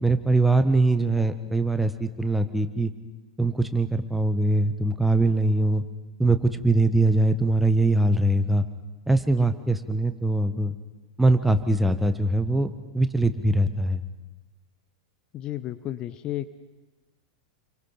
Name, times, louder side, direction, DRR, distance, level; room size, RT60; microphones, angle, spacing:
voice 1, 0.0-2.9 3.4-5.8 6.2-8.7 9.1-10.7 11.2-14.0, right 2 dB, 5° right, 10 dB, 1.3 m, -22 dB
voice 2, 15.3-16.5, left 13 dB, 35° left, 12 dB, 0.9 m, -32 dB
29.5 x 24.0 x 5.8 m, 1.1 s
figure-of-eight pair, 90°, 2 cm